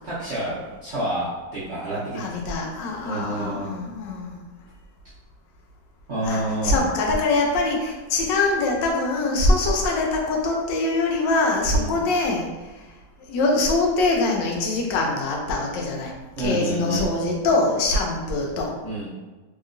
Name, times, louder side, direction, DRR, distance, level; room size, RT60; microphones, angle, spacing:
voice 1, 0.0-2.2 3.0-3.8 6.1-6.9 9.6-9.7 11.7-12.0 16.4-17.1 18.8-19.1, right 1 dB, 55° right, -10 dB, 0.7 m, -29 dB
voice 2, 2.2-4.4 6.2-12.5 12.8-12.9 13.3-16.1 16.4-18.8, left 2 dB, 80° left, 0 dB, 1.3 m, -23 dB
3.0 x 2.8 x 2.5 m, 1.2 s
omnidirectional pair, 2.0 m